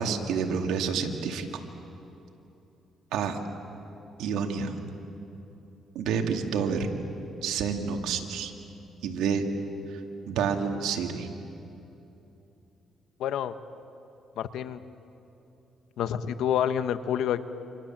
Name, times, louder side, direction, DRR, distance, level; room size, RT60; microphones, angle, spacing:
voice 1, 0.0-1.5 3.1-3.4 4.2-4.7 5.9-6.9 7.4-8.5 9.0-9.5 9.9-10.0 10.3-11.3, right 6 dB, 85° right, 4 dB, 2.4 m, -28 dB
voice 2, 13.2-13.5 14.4-14.8 16.0-17.4, left 9 dB, 80° left, 11 dB, 1.2 m, -28 dB
28.5 x 27.0 x 7.5 m, 3.0 s
cardioid pair, 90°, 0 cm